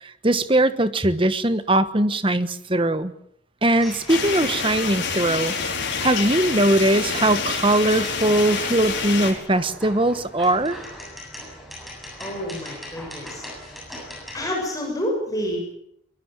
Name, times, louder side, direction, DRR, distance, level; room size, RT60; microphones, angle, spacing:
voice 1, 0.0-3.1 3.6-10.8, right 1 dB, 25° right, 12 dB, 1.2 m, -21 dB
sound 1, 3.8-14.5, equal, ahead, 7.8 m, -40 dB
sound 2, 4.1-9.3, left 5 dB, 75° left, 5.4 m, -27 dB
voice 2, 12.2-13.4 14.3-15.7, equal, 20° left, 1 dB, 7.0 m, -28 dB
23.0 x 21.0 x 7.6 m, 0.70 s
head